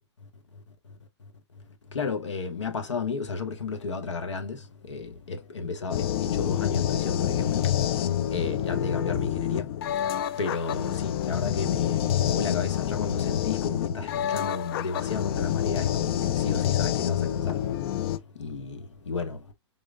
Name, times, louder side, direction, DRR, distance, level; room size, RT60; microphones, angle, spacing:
voice 1, 1.9-4.6 4.9-7.7 8.3-9.7 10.4-17.6 18.4-19.4, left 4 dB, 85° left, 1.0 m, -33 dB
sound 1, 5.9-18.2, left 11 dB, 55° left, 0.4 m, -27 dB
3.8 x 3.1 x 2.3 m
hypercardioid pair, 120°, 15 cm